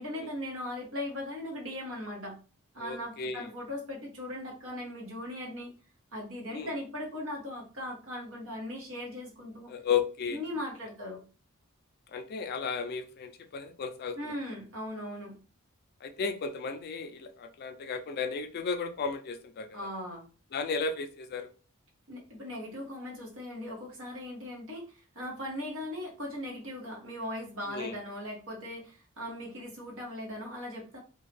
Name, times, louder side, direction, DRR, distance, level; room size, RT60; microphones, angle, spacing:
voice 1, 0.0-2.4 2.7-5.7 6.1-9.7 10.3-11.2 14.2-15.4 19.7-20.2 22.1-31.0, left 1 dB, 65° right, -1 dB, 1.2 m, -39 dB
voice 2, 2.8-3.5 6.5-6.7 9.7-10.4 12.1-14.3 16.0-19.9 20.5-21.5 27.7-28.0, left 5 dB, 50° left, 8 dB, 0.4 m, -34 dB
2.7 x 2.3 x 3.3 m, 0.36 s
head